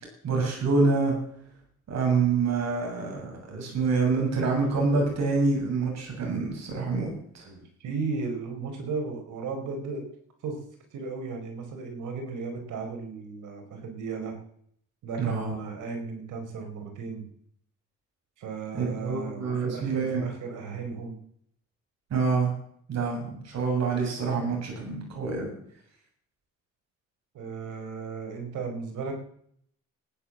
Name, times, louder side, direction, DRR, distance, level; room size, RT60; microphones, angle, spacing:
voice 1, 0.2-1.1 1.9-7.5 15.2-15.5 18.7-20.2 22.1-22.5 22.9-25.5, right 4 dB, 60° right, 1 dB, 7.2 m, -26 dB
voice 2, 7.4-10.0 10.4-10.6 10.9-14.4 15.0-17.2 18.4-21.2 27.3-29.1, right 4 dB, 80° right, 4 dB, 4.7 m, -35 dB
15.0 x 10.5 x 7.6 m, 0.66 s
cardioid pair, 90°, 30 cm